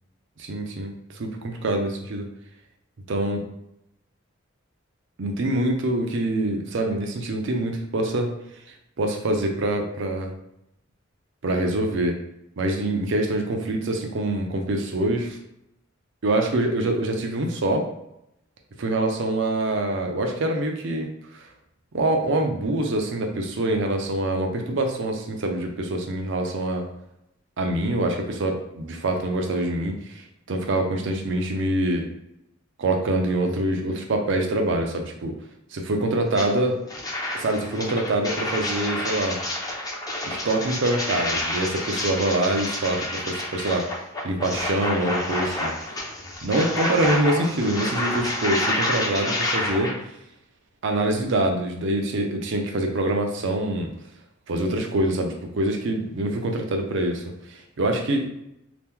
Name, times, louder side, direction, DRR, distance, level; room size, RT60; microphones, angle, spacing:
voice 1, 0.4-2.3 3.1-3.4 5.2-8.3 9.0-10.3 11.4-12.2 12.6-15.4 16.2-17.9 18.8-21.4 21.9-26.9 27.6-32.1 32.8-35.3 35.7-36.8 37.3-39.4 40.2-43.9 44.2-45.7 46.4-50.0 50.8-53.9 54.5-58.3, right 1 dB, 65° right, 3 dB, 0.5 m, -25 dB
sound 1, 36.3-36.5 36.9-49.9, left 1 dB, 20° left, 0.5 m, -29 dB
2.9 x 2.2 x 3.5 m, 0.82 s
head